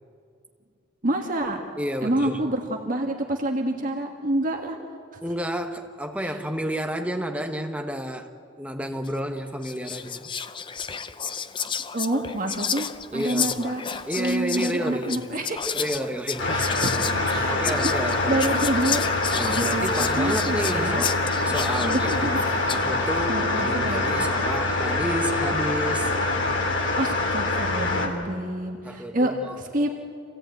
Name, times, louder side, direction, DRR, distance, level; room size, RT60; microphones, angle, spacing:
voice 1, 1.0-1.6 2.0-4.8 5.1-5.2 6.2-6.3 11.9-12.9 13.1-13.8 14.2-15.6 16.5-17.0 17.3-21.0 21.8-22.7 23.3-24.0 27.0-29.9, right 1 dB, 45° right, 1.6 m, -28 dB
voice 2, 1.8-2.4 5.2-8.3 8.6-10.3 13.1-13.6 14.1-15.2 15.7-16.6 17.0-17.2 17.4-18.4 19.3-22.4 22.7-26.2 28.8-29.6, equal, 5° right, 1.2 m, -30 dB
Whispering, 9.1-9.3 9.6-22.9, left 7 dB, 25° left, 0.6 m, -32 dB
sound 1, 16.4-28.1, left 2 dB, 70° left, 3.0 m, -25 dB
26.5 x 17.0 x 9.2 m
head